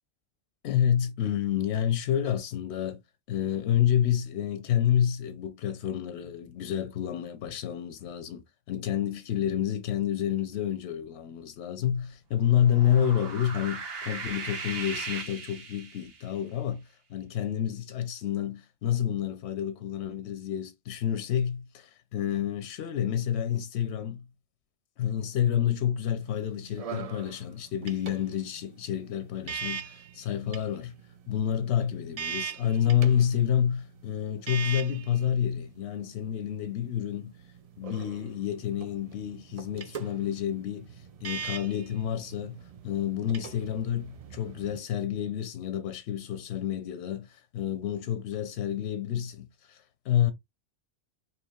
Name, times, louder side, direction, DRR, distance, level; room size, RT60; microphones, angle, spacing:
voice 1, 0.6-3.0 3.3-24.3 25.0-30.9 31.3-37.4 37.8-40.9 41.2-50.3, left 10 dB, 90° left, 0.9 m, -29 dB
sound 1, 12.5-16.3, right 4 dB, 65° right, 1.2 m, -38 dB
sound 2, 26.2-44.8, right 7 dB, 45° right, 0.5 m, -42 dB
4.5 x 2.8 x 2.3 m
omnidirectional pair, 1.1 m